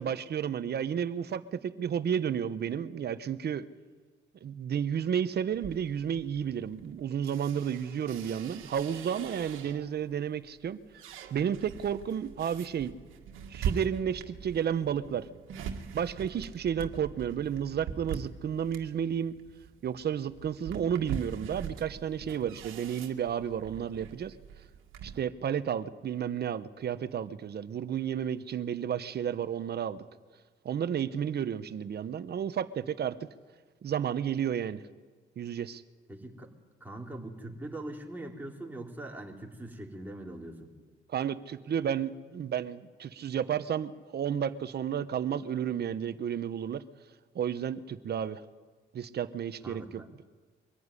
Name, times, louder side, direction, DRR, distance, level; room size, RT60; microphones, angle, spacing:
voice 1, 0.0-3.7 4.4-10.8 11.3-13.0 13.5-15.3 15.9-19.3 19.8-24.3 25.0-30.0 30.6-33.3 33.8-34.8 35.4-35.8 41.1-46.8 47.3-48.4 48.9-50.0, right 8 dB, 55° right, 13 dB, 1.1 m, -32 dB
sound 1, 5.5-10.0 10.5-25.2, right 7 dB, 85° right, 1.9 m, -42 dB
voice 2, 36.1-36.5 36.8-40.7 49.6-50.1, right 1 dB, 10° right, -1 dB, 3.8 m, -42 dB
23.5 x 14.5 x 9.9 m, 1.5 s
cardioid pair, 90°, 20 cm